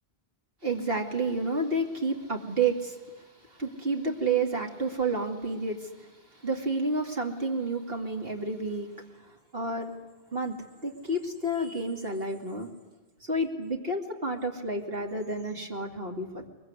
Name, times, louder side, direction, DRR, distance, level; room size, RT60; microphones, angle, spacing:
voice 1, 0.6-8.9 9.2-9.9 10.3-10.5 10.8-12.7 13.2-16.5, right 2 dB, 65° right, 3 dB, 2.8 m, -30 dB
23.0 x 22.5 x 9.7 m, 1.2 s
omnidirectional pair, 1.1 m